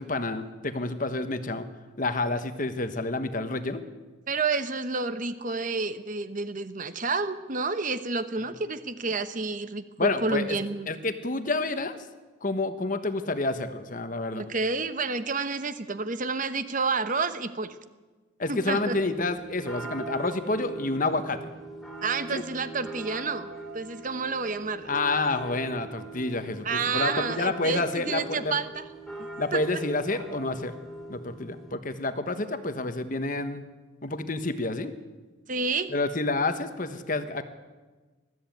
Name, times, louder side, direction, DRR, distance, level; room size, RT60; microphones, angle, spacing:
voice 1, 0.0-1.7 2.0-3.8 10.0-10.6 10.9-12.0 12.4-14.5 18.4-21.4 22.3-22.4 24.9-28.6 29.4-30.8 31.1-33.6 34.0-34.9 35.9-37.4, left 2 dB, 40° left, 10 dB, 1.2 m, -29 dB
voice 2, 4.3-10.9 14.3-17.8 18.5-19.0 22.0-23.5 23.7-24.9 26.6-28.8 29.5-29.8 35.5-35.9, right 4 dB, 40° right, 11 dB, 1.0 m, -29 dB
sound 1, 18.8-31.7, right 2 dB, ahead, 3.7 m, -41 dB
20.5 x 14.0 x 9.2 m, 1.3 s
head